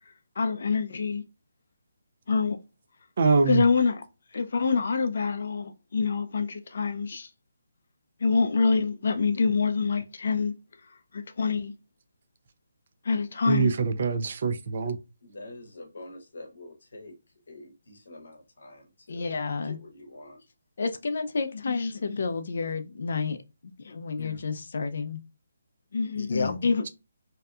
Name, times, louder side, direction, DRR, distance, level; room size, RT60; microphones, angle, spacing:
voice 1, 0.4-1.2 2.3-2.6 3.5-4.0 4.3-7.3 8.2-10.5 11.1-11.7 13.1-13.7 19.1-19.8 20.8-23.4 23.8-25.2 25.9-26.9, left 4 dB, 50° left, 0.3 m, -27 dB
voice 2, 3.2-3.7 13.5-15.0, right 4 dB, 40° right, 0.3 m, -24 dB
voice 3, 15.2-17.1 17.5-20.4, left 2 dB, 65° left, 0.8 m, -46 dB
2.6 x 2.2 x 2.3 m
hypercardioid pair, 175°, 0 cm